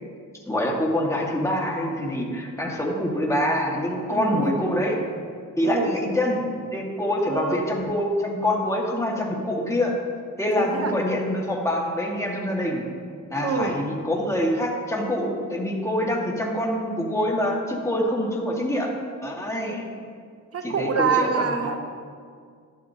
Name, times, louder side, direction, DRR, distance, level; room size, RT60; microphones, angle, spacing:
voice 1, 0.5-5.0 5.6-9.9 10.4-12.8 13.3-18.9 19.2-19.9 20.6-21.7, left 1 dB, 10° left, -2 dB, 1.7 m, -25 dB
voice 2, 4.1-4.6 5.6-6.0 7.3-7.6 10.6-11.0 13.4-13.8 20.5-21.8, right 5 dB, 45° right, 5 dB, 0.9 m, -26 dB
11.5 x 11.0 x 2.8 m, 2.1 s
cardioid pair, 100°, 32 cm